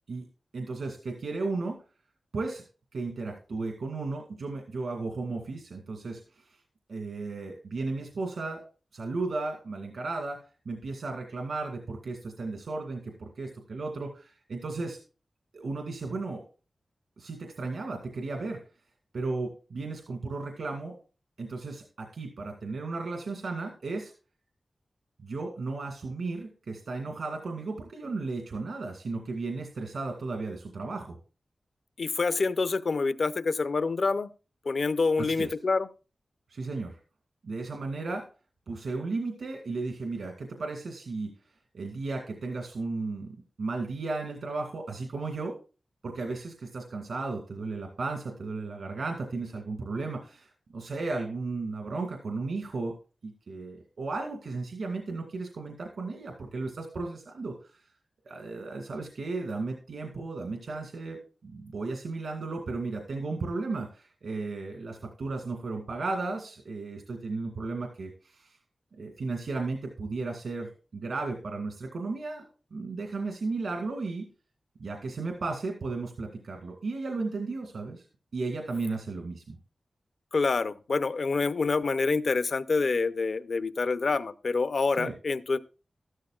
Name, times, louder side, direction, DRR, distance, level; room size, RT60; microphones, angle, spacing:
voice 1, 0.5-1.8 2.3-2.6 2.9-6.6 6.9-8.6 8.9-10.4 10.7-15.0 15.5-16.4 17.2-18.6 19.1-21.0 21.4-24.1 25.2-31.2 35.2-35.5 36.5-37.0 37.4-38.2 38.7-41.3 41.7-45.5 46.0-52.9 53.2-57.8 58.2-68.6 69.0-72.4 72.7-74.3 74.8-78.1 78.3-79.6 85.0-85.1, right 3 dB, 85° right, 2 dB, 2.0 m, -34 dB
voice 2, 32.0-34.3 34.7-35.9 80.3-85.6, left 4 dB, 60° left, 13 dB, 0.6 m, -27 dB
13.5 x 12.5 x 2.4 m, 0.35 s
wide cardioid pair, 115°, 0 cm